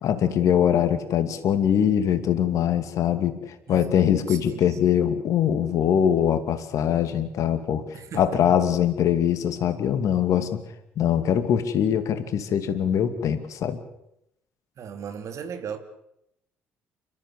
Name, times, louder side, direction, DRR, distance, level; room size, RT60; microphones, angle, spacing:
voice 1, 0.0-7.9 8.1-10.6 11.0-13.8, left 9 dB, 60° left, 9 dB, 2.4 m, -22 dB
voice 2, 3.7-4.9 7.9-8.6 14.8-15.8, right 7 dB, 55° right, 8 dB, 2.7 m, -38 dB
29.0 x 14.0 x 8.2 m, 0.83 s
hypercardioid pair, 50°, 6 cm